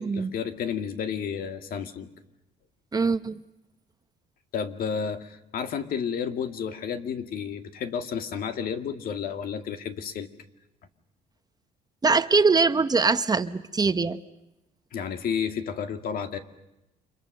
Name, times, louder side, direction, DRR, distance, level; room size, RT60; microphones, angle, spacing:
voice 1, 0.0-2.1 4.5-10.3 14.9-16.4, left 7 dB, 60° left, 7 dB, 2.2 m, -31 dB
voice 2, 2.9-3.4 12.0-14.2, right 4 dB, 25° right, 11 dB, 1.0 m, -22 dB
30.0 x 25.0 x 6.6 m, 0.90 s
cardioid pair, 110°, 17 cm